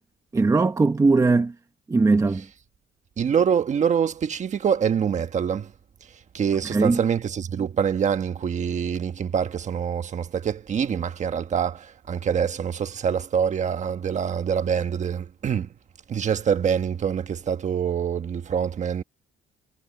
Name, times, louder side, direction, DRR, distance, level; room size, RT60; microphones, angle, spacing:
voice 1, 0.3-1.5 1.9-2.4 6.7-7.0, right 3 dB, 15° right, 1.0 m, -19 dB
voice 2, 3.2-5.7 6.0-15.7 16.1-19.0, right 7 dB, 35° right, 1.3 m, -25 dB
cardioid pair, 160°, 21 cm